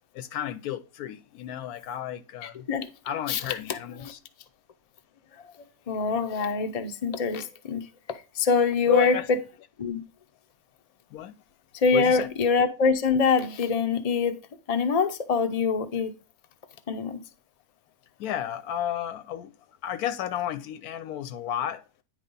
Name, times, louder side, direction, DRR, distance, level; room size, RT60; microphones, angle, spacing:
voice 1, 0.1-2.7 3.0-4.2 8.9-9.3 11.1-11.4 11.9-12.3 18.2-19.5 19.8-21.8, left 11 dB, 70° left, 1.0 m, -32 dB
voice 2, 2.4-2.9 3.3-3.4 4.0-4.1 5.6-9.2 9.8-10.0 11.7-14.4 14.7-16.1 16.9-17.2, left 5 dB, 55° left, 0.4 m, -25 dB
9.7 x 3.3 x 5.3 m
omnidirectional pair, 1.8 m